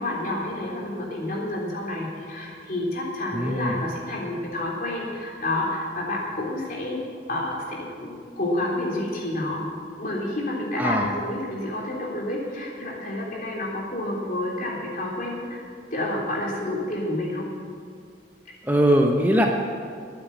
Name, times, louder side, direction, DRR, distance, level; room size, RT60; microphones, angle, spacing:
voice 1, 0.0-7.0 7.3-9.6 10.0-15.6 15.9-17.5, left 1 dB, 50° left, -3 dB, 3.5 m, -29 dB
voice 2, 3.3-3.7 10.8-11.1 18.6-19.5, equal, 10° right, 1 dB, 0.9 m, -20 dB
12.5 x 9.3 x 8.5 m, 2.2 s
head